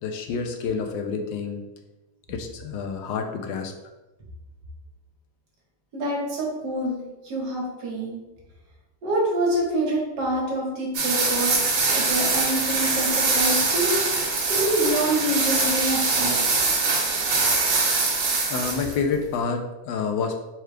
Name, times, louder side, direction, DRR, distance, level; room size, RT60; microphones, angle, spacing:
voice 1, 0.0-1.6 2.3-3.7 18.5-20.4, left 5 dB, 75° left, 5 dB, 1.3 m, -28 dB
voice 2, 5.9-8.2 9.0-13.9 14.5-16.6, right 1 dB, 60° right, -3 dB, 1.8 m, -26 dB
sound 1, 10.9-19.0, right 3 dB, 80° right, 1.7 m, -23 dB
4.5 x 2.3 x 4.8 m, 1.0 s
omnidirectional pair, 2.1 m